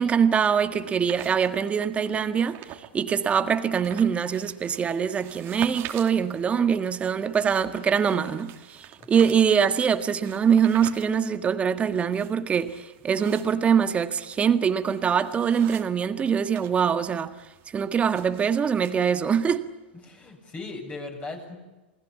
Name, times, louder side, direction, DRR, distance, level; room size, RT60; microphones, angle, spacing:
voice 1, 0.0-17.3 17.7-19.7, right 7 dB, 20° right, 1.8 m, -23 dB
sound 1, 0.7-2.9 3.3-16.7 17.0-18.9, right 13 dB, 40° right, 2.7 m, -45 dB
voice 2, 19.9-21.6, left 3 dB, 20° left, 7.7 m, -38 dB
28.5 x 21.0 x 8.6 m
hypercardioid pair, 115°, 6 cm